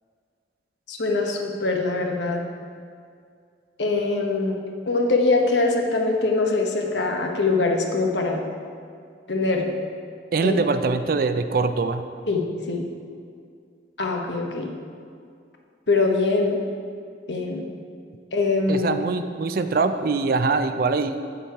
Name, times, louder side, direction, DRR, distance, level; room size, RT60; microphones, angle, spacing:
voice 1, 0.9-2.5 3.8-4.6 4.9-8.4 9.3-9.7 10.4-10.6 12.3-12.9 14.0-14.7 15.9-16.6 17.3-17.6 18.3-18.9, left 3 dB, 75° left, 2 dB, 1.0 m, -23 dB
voice 2, 10.3-12.1 18.7-21.2, right 4 dB, 55° right, 9 dB, 0.4 m, -23 dB
8.1 x 7.1 x 4.6 m, 2.3 s
head